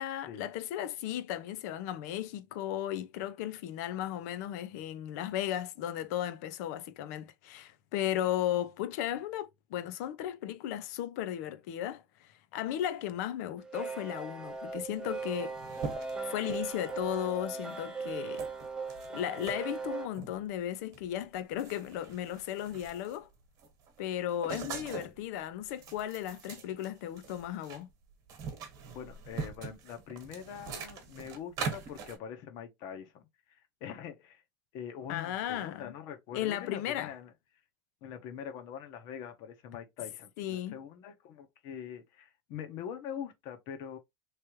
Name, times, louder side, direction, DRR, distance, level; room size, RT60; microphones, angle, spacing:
voice 1, 0.0-15.6 16.2-18.4 19.1-23.3 24.0-27.9 35.1-35.9 36.3-37.1 40.4-40.8, left 11 dB, 65° left, 0.7 m, -35 dB
sound 1, 13.6-20.1, right 4 dB, 10° right, 0.6 m, -39 dB
sound 2, 14.9-15.0 15.2-17.1 17.7-17.9 18.4-19.6 20.1-20.4 20.9-21.1 21.4-23.3 23.6-25.2 25.6-27.8 28.1-32.2, right 5 dB, 40° right, 1.3 m, -42 dB
voice 2, 28.9-34.4 34.7-37.3 38.0-44.0, left 8 dB, 50° left, 1.1 m, -43 dB
3.4 x 3.3 x 3.0 m
supercardioid pair, 160°, 10 cm